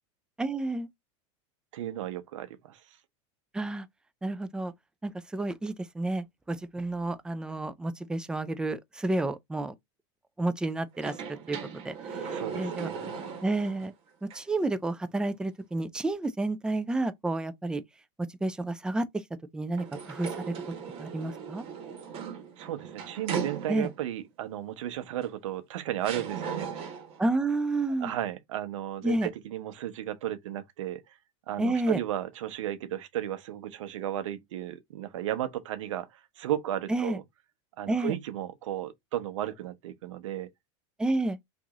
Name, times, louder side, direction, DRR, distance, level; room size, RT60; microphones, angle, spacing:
voice 1, 0.4-0.9 3.5-3.9 4.2-4.7 5.0-9.7 10.4-11.6 11.8-12.9 13.4-13.9 14.2-17.8 18.2-19.2 19.5-20.5 21.0-21.6 23.7-23.9 27.2-28.1 29.0-29.3 31.6-32.0 36.9-37.2 37.9-38.1 41.0-41.4, right 2 dB, 5° right, 0.3 m, -30 dB
voice 2, 1.7-2.9 12.3-13.2 22.6-26.9 28.0-31.2 31.5-37.2 37.8-40.5, right 12 dB, 85° right, 0.8 m, -34 dB
sound 1, 10.9-13.9 14.3-14.4 19.8-24.1 25.2-25.3 26.0-27.2, right 6 dB, 40° right, 1.2 m, -37 dB
2.9 x 2.6 x 3.5 m
supercardioid pair, 125°, 16 cm